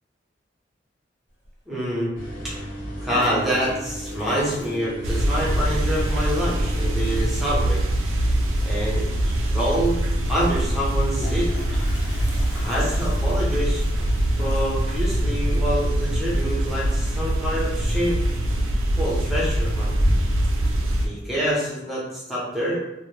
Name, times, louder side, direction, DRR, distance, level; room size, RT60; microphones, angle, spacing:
Toilet flush, 1.4-1.5 2.7-5.6 5.8-5.9 6.2-6.3 6.6-7.0 8.7-8.8 9.1-9.2 10.8-17.5 17.8-18.2 18.6-19.2 19.6-20.6, equal, 90° left, 1.1 m, -36 dB
voice 1, 1.7-2.1 2.4-2.7 3.0-7.8 8.6-9.0 9.4-11.5 12.5-14.1 14.4-18.2 19.0-20.0 21.0-22.8, equal, ahead, -6 dB, 0.6 m, -26 dB
sound 1, 2.2-7.3, right 1 dB, 45° left, 0.6 m, -36 dB
sound 2, 5.0-21.1, right 1 dB, 85° right, 0.4 m, -23 dB
2.1 x 2.0 x 3.0 m, 0.92 s
head